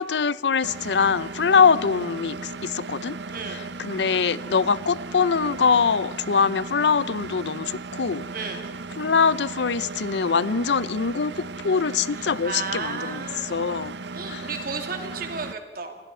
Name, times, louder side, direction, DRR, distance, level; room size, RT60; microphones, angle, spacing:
voice 1, 0.0-3.2 3.5-8.3 9.0-13.2 13.5-14.0 14.3-14.5, left 5 dB, 80° left, 0.6 m, -23 dB
Engine, 0.6-15.5, right 3 dB, 75° right, 0.7 m, -36 dB
voice 2, 3.3-3.6 8.3-8.7 12.1-13.6 14.1-16.0, right 4 dB, 55° right, 2.9 m, -34 dB
28.5 x 21.0 x 4.4 m
head